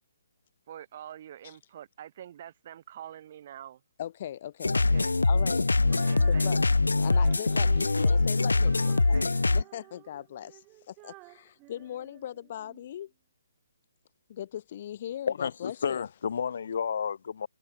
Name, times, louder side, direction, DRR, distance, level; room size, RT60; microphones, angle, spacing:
voice 1, 0.7-3.8 4.7-5.2 6.0-6.5 7.2-7.7 8.8-9.3, right 10 dB, 45° right, 5.0 m, -46 dB
voice 2, 4.0-4.8 5.2-5.7 6.3-6.6 6.9-13.1 14.3-16.1, left 11 dB, 45° left, 2.3 m, -39 dB
sound 1, 4.6-9.6, left 3 dB, 85° left, 0.3 m, -23 dB
Female singing, 5.8-12.8, right 24 dB, 25° right, 3.6 m, -52 dB
voice 3, 15.3-17.5, left 7 dB, 60° left, 0.7 m, -31 dB
figure-of-eight pair, 145°, 0 cm